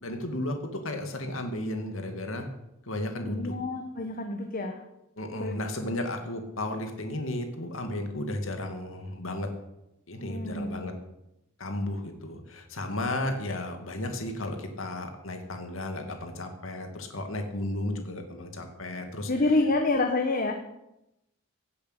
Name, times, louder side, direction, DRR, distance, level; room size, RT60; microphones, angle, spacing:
voice 1, 0.0-0.5 0.8-2.5 2.9-3.5 5.2-9.5 10.1-10.9 11.6-19.3, left 1 dB, 70° left, 5 dB, 2.5 m, -34 dB
voice 2, 3.3-4.8 5.4-5.6 10.2-10.8 19.3-20.5, left 2 dB, 45° left, 4 dB, 1.4 m, -27 dB
17.0 x 8.5 x 8.1 m, 0.89 s
head